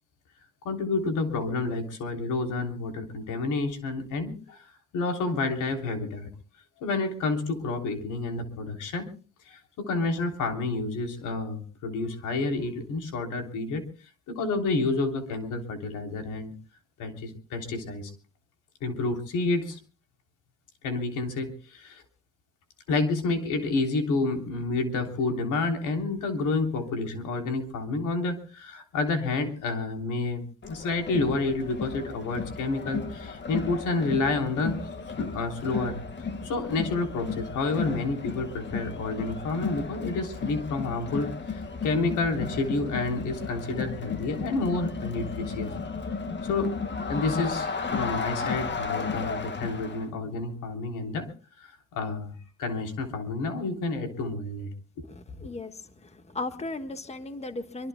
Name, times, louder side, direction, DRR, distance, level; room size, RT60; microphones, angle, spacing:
voice 1, 0.6-4.6 4.9-6.3 6.8-9.1 9.5-13.8 14.3-16.5 17.0-18.1 18.8-19.8 20.8-22.0 22.9-34.8 35.2-36.0 36.4-45.7 46.4-46.8 47.1-51.3 51.9-52.3 52.6-54.7 55.0-55.1 55.4-55.5, left 3 dB, 85° left, 4 dB, 3.4 m, -29 dB
Crowd, 30.6-50.0, left 4 dB, 35° left, 1.8 m, -34 dB
voice 2, 55.1-55.7 56.3-57.9, left 2 dB, 20° left, 8 dB, 1.5 m, -35 dB
25.0 x 24.0 x 2.2 m, 0.37 s
cardioid pair, 90°, 30 cm